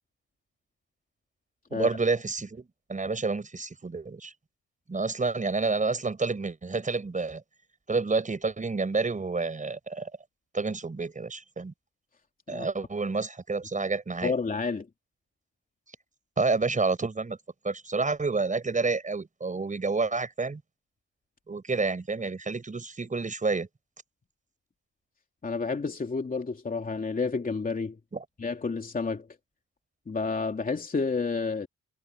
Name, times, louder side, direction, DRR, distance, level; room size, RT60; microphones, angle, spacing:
voice 1, 1.7-4.3 4.9-7.4 7.9-10.1 10.5-11.7 12.5-14.3 16.4-17.4 17.6-20.6 21.5-23.7 28.1-28.2, right 4 dB, 25° right, 5.1 m, -29 dB
voice 2, 14.2-14.9 25.4-28.0 28.4-29.3 30.1-31.7, left 4 dB, 30° left, 2.9 m, -30 dB
cardioid pair, 90°, 30 cm